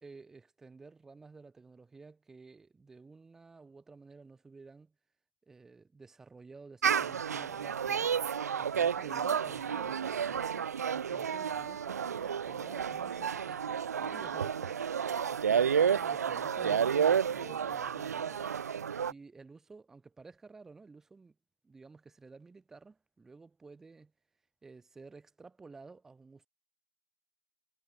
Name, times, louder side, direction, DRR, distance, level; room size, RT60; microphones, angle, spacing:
voice 1, 0.0-4.9 5.4-8.1 8.6-21.4 21.6-24.1 24.6-26.5, right 4 dB, 5° right, 2.0 m, -53 dB
sound 1, 6.8-19.1, right 7 dB, 55° right, 0.5 m, -31 dB
hypercardioid pair, 160°, 11 cm